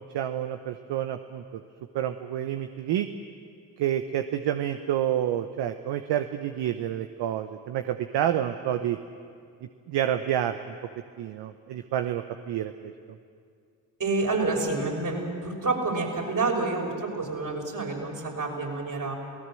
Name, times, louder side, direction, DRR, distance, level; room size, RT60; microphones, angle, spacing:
voice 1, 0.1-1.6 1.9-3.1 3.8-9.0 9.9-10.8 11.2-12.9, right 11 dB, 70° right, 8 dB, 1.0 m, -29 dB
voice 2, 14.0-19.1, right 3 dB, 45° right, 1 dB, 5.8 m, -28 dB
28.5 x 18.0 x 7.7 m, 2.2 s
hypercardioid pair, 45°, 43 cm